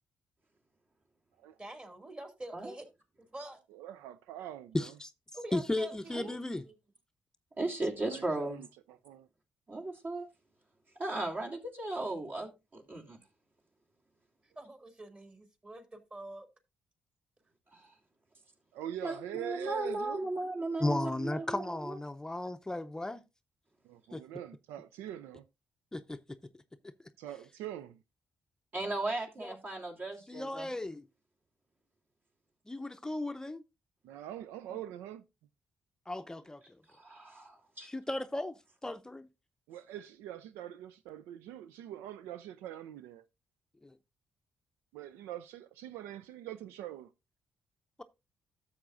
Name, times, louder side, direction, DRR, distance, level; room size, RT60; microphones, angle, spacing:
voice 1, 1.6-2.9 3.3-3.6 5.3-6.4 6.6-6.7 14.6-16.5 34.7-34.8, right 1 dB, 30° right, 2.5 m, -46 dB
voice 2, 3.7-4.9 8.0-9.3 18.7-20.3 23.8-25.4 27.2-28.0 34.0-35.2 39.7-43.2 44.9-47.1, right 12 dB, 85° right, 0.4 m, -43 dB
voice 3, 4.7-5.1 5.5-6.7 20.8-23.2 24.1-24.2 25.9-26.2 26.8-26.9 29.4-29.6 30.3-31.0 32.7-33.6 36.1-36.6 37.8-39.3 43.8-44.0, left 2 dB, 15° left, 0.6 m, -35 dB
voice 4, 7.6-8.6 9.7-10.3 11.0-13.2 17.7-17.9 19.0-22.0 28.7-30.7 36.9-37.9, right 2 dB, 50° right, 3.1 m, -36 dB
12.5 x 7.1 x 2.5 m
hypercardioid pair, 50°, 4 cm